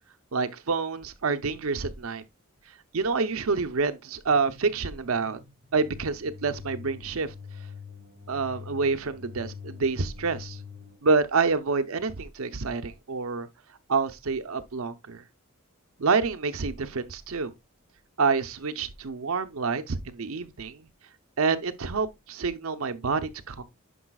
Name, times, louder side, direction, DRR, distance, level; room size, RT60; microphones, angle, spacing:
voice 1, 0.3-2.2 2.9-5.4 5.7-7.3 8.3-10.6 11.0-13.5 13.9-15.2 16.0-17.5 18.2-20.9 21.4-23.6, right 4 dB, 80° right, 0.7 m, -27 dB
sound 1, 4.3-11.0, left 5 dB, 50° right, 3.0 m, -44 dB
10.0 x 5.5 x 2.3 m
head